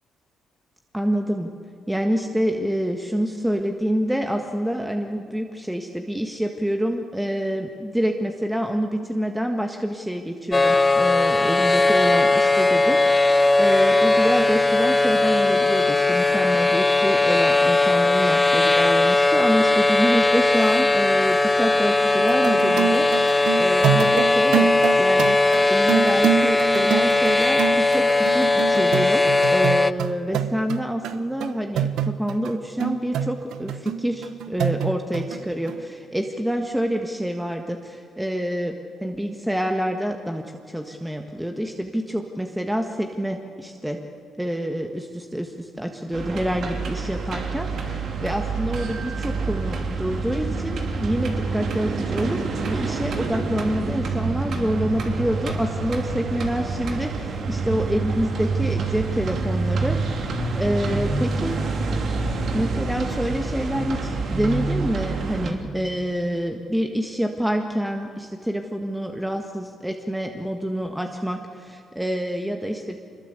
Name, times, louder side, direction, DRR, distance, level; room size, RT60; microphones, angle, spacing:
voice 1, 0.9-1.5 1.9-24.7 25.0-38.7 39.0-44.0 44.4-61.6 62.5-73.0, equal, 5° right, 4 dB, 1.6 m, -27 dB
sound 1, 10.5-29.9, left 2 dB, 20° left, 0.7 m, -19 dB
sound 2, 22.2-32.5 32.8-35.4 35.7-35.8, right 9 dB, 80° right, 1.1 m, -26 dB
sound 3, 46.1-65.5, right 4 dB, 60° right, 3.0 m, -27 dB
25.5 x 21.5 x 8.2 m, 2.4 s
cardioid pair, 90°, 0 cm